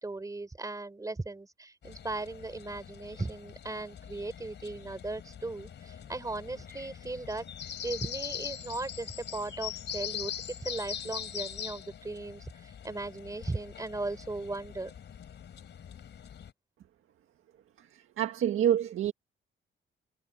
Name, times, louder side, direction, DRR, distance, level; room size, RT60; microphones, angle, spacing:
voice 1, 0.0-14.9, right 2 dB, 15° right, 4.6 m, -37 dB
sound 1, 1.8-16.5, left 9 dB, 60° left, 3.7 m, -42 dB
voice 2, 18.2-19.1, right 10 dB, 90° right, 1.8 m, -26 dB
wide cardioid pair, 155°, 21 cm